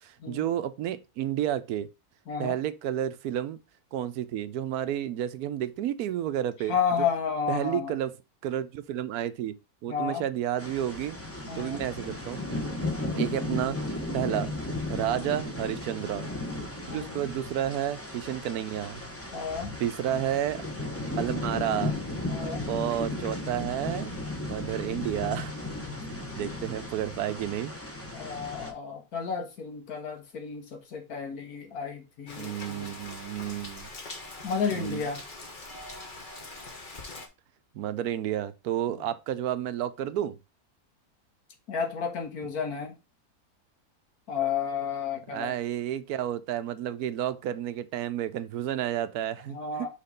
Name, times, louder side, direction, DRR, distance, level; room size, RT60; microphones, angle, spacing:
voice 1, 0.0-1.9 2.4-3.6 3.9-6.8 7.5-8.1 8.4-11.2 11.6-12.4 13.1-13.8 14.1-14.5 14.9-16.3 16.9-19.0 19.8-20.6 21.2-21.9 22.2-24.1 24.4-25.5 26.2-27.7 32.4-33.9 34.7-35.0 37.7-40.4 45.3-49.6, right 11 dB, 80° right, 1.1 m, -31 dB
voice 2, 2.3-2.6 6.7-7.9 9.9-10.2 11.5-11.9 12.8-13.2 15.0-15.3 16.9-17.2 19.3-19.8 22.3-22.7 28.1-32.9 34.4-35.2 38.9-39.0 41.7-43.0 44.3-45.6 49.5-49.9, left 6 dB, 75° left, 1.8 m, -32 dB
sound 1, 10.6-28.7, left 2 dB, 10° left, 0.9 m, -35 dB
Rain, 32.3-37.3, left 2 dB, 35° left, 1.3 m, -43 dB
5.9 x 3.6 x 5.1 m
omnidirectional pair, 1.6 m